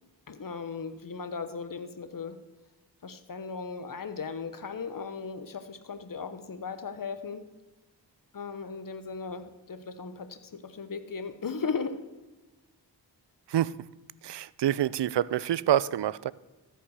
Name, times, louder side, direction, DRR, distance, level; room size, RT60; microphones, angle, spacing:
voice 1, 0.3-2.4 3.0-7.4 8.3-12.0, left 5 dB, 50° left, 10 dB, 1.1 m, -37 dB
voice 2, 14.2-16.3, right 11 dB, 70° right, 20 dB, 0.5 m, -26 dB
13.5 x 5.7 x 6.5 m, 1.1 s
cardioid pair, 50°, 44 cm